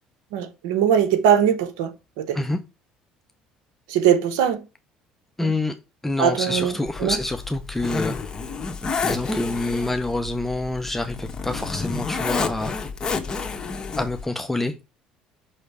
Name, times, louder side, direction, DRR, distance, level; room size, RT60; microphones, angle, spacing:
voice 1, 0.3-1.9 2.2-2.4 3.9-4.6 5.4-5.5 6.2-6.7 7.0-7.2, right 8 dB, 90° right, 0.7 m, -20 dB
voice 2, 5.4-5.8 6.0-8.2 9.0-12.8 14.0-14.8, left 2 dB, 10° left, 0.6 m, -27 dB
Zipper (clothing), 6.9-14.2, left 4 dB, 30° left, 1.2 m, -30 dB
5.8 x 3.2 x 5.4 m
supercardioid pair, 90°, 3 cm